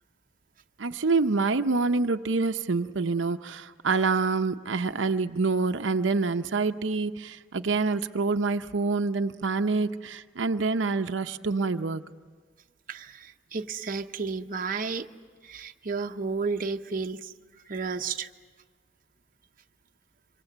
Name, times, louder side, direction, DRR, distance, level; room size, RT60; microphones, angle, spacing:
voice 1, 0.8-12.0, right 4 dB, 85° right, 7 dB, 0.7 m, -26 dB
voice 2, 12.9-15.1 15.4-17.3 17.6-18.3, right 4 dB, 50° right, 5 dB, 0.8 m, -32 dB
26.5 x 25.5 x 7.9 m, 1.5 s
head